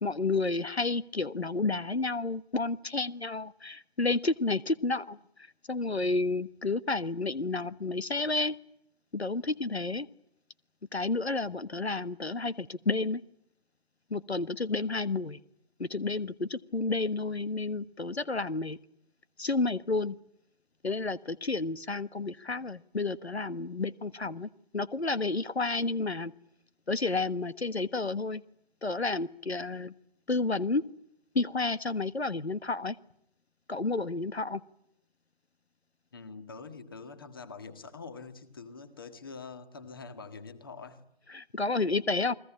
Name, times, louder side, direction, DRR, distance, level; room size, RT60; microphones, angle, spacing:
voice 1, 0.0-5.2 5.7-8.5 9.1-10.1 10.9-13.2 14.1-15.4 15.8-18.8 19.4-20.2 20.8-26.3 26.9-28.4 28.8-29.9 30.3-30.8 31.3-33.0 33.7-34.6 41.3-42.3, left 3 dB, 85° left, 15 dB, 1.5 m, -31 dB
voice 2, 36.1-41.0, left 4 dB, 20° left, 11 dB, 1.6 m, -45 dB
29.5 x 21.0 x 8.7 m, 0.75 s
figure-of-eight pair, 165°, 32 cm